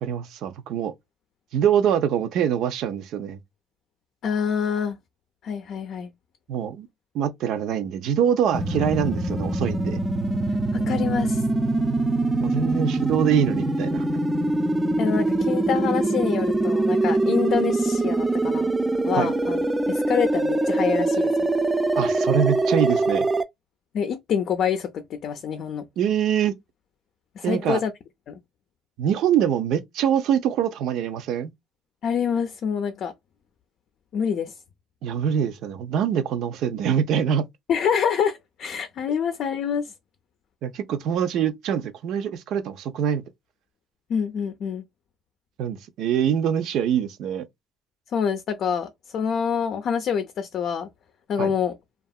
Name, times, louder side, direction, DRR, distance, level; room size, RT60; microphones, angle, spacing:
voice 1, 0.0-0.9 1.5-3.4 6.5-6.9 7.1-10.0 12.4-14.0 19.2-19.3 22.0-23.3 26.0-26.6 27.4-27.8 29.0-31.5 35.0-37.4 40.6-43.2 45.6-47.4 51.4-51.5, right 9 dB, 70° right, 0.5 m, -24 dB
voice 2, 4.2-5.0 5.4-6.1 10.7-11.4 15.0-18.7 19.0-19.6 19.9-21.5 23.9-25.8 27.4-27.9 28.3-28.4 32.0-33.1 34.1-34.5 37.7-39.9 44.1-44.8 48.1-50.9 51.3-51.8, left 7 dB, 60° left, 0.5 m, -26 dB
sound 1, 8.5-23.4, right 2 dB, 15° right, 0.4 m, -23 dB
2.7 x 2.4 x 2.3 m
cardioid pair, 95°, 0 cm